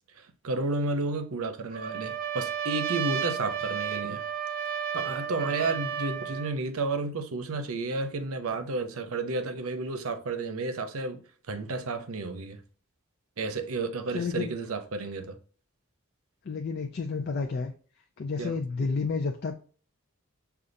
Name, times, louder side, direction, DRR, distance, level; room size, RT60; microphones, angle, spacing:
voice 1, 0.2-4.2 4.9-11.2 11.5-12.6 13.4-15.4 18.4-18.6, right 3 dB, 85° right, 0.6 m, -32 dB
Trumpet, 1.7-6.6, right 8 dB, 40° right, 0.5 m, -32 dB
voice 2, 14.1-14.5 16.5-17.7 18.2-19.5, left 4 dB, 50° left, 0.4 m, -30 dB
6.3 x 2.4 x 2.6 m
head